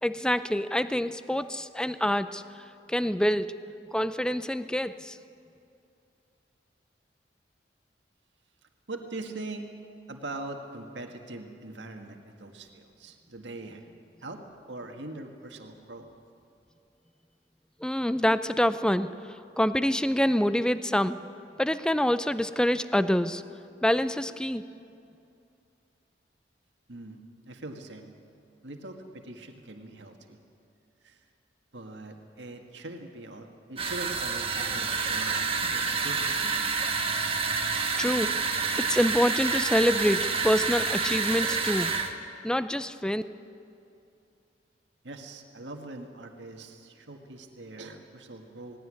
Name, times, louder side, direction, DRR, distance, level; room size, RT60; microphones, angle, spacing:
voice 1, 0.0-2.4 2.9-3.6 3.9-5.2 17.8-19.1 19.6-21.2 21.6-23.4 23.8-24.6 38.0-38.4 38.8-42.0 42.4-43.2, equal, 5° left, 13 dB, 0.5 m, -26 dB
voice 2, 8.9-9.7 10.1-13.8 14.2-14.4 14.7-16.1 26.9-27.2 27.5-28.1 28.6-30.4 31.0-31.2 31.7-36.4 45.0-48.8, right 2 dB, 90° right, 4 dB, 1.8 m, -42 dB
sound 1, 33.8-42.1, right 5 dB, 35° right, 1.3 m, -28 dB
18.5 x 16.5 x 9.8 m, 2.6 s
head